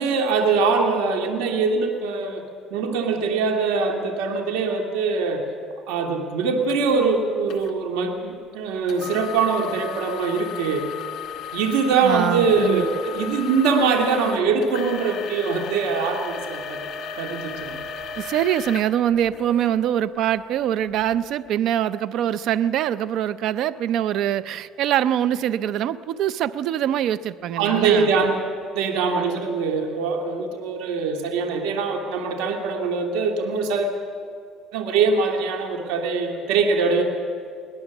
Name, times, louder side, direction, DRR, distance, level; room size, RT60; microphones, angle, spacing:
voice 1, 0.0-2.4 2.7-5.4 5.9-10.9 11.5-16.8 17.2-17.8 27.6-28.5 28.7-33.9 34.7-37.0, right 4 dB, 90° right, 3 dB, 2.2 m, -23 dB
sound 1, 6.7-6.8 7.5-7.7 8.9-19.7 20.3-20.4 21.0-21.1, left 8 dB, 60° left, 2.1 m, -35 dB
voice 2, 12.0-12.9 18.2-28.1, right 11 dB, 65° right, 16 dB, 0.5 m, -23 dB
22.5 x 18.5 x 7.1 m, 2.3 s
cardioid pair, 110°, 0 cm